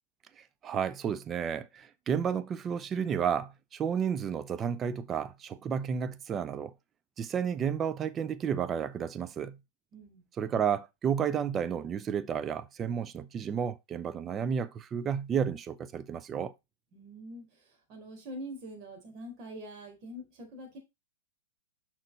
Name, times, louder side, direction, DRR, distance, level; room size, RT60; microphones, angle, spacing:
voice 1, 0.6-6.7 7.2-9.6 10.4-16.5, right 7 dB, 25° right, 0.6 m, -32 dB
voice 2, 9.9-10.2 16.9-20.8, equal, 40° right, 4.0 m, -44 dB
6.6 x 5.9 x 4.0 m
hypercardioid pair, 105°, 0 cm